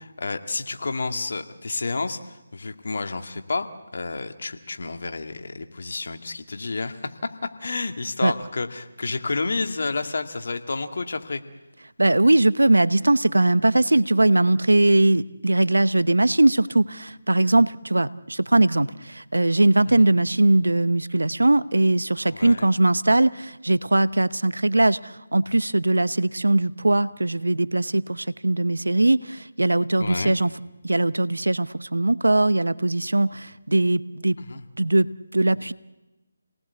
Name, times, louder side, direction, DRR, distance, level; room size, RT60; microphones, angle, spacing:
voice 1, 0.0-3.7 3.9-11.4 19.9-20.1 22.3-22.7 30.0-30.3 34.4-34.6, left 3 dB, 60° left, 7 dB, 2.1 m, -30 dB
voice 2, 12.0-30.5 30.8-34.4 34.8-35.7, right 2 dB, 85° right, 17 dB, 0.9 m, -20 dB
29.0 x 19.0 x 8.3 m, 1.1 s
figure-of-eight pair, 160°, 0 cm